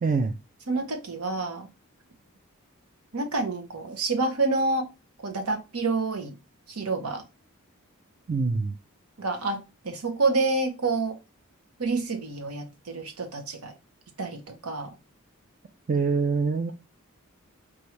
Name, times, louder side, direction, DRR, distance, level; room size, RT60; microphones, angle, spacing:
voice 1, 0.0-0.3 8.3-8.7 15.9-16.7, right 4 dB, 35° right, 0.4 m, -24 dB
voice 2, 0.7-1.7 3.1-4.9 5.2-6.3 6.7-7.2 9.2-11.2 11.8-13.7 14.2-14.9, right 3 dB, 85° right, 1.0 m, -28 dB
4.6 x 2.6 x 3.1 m
head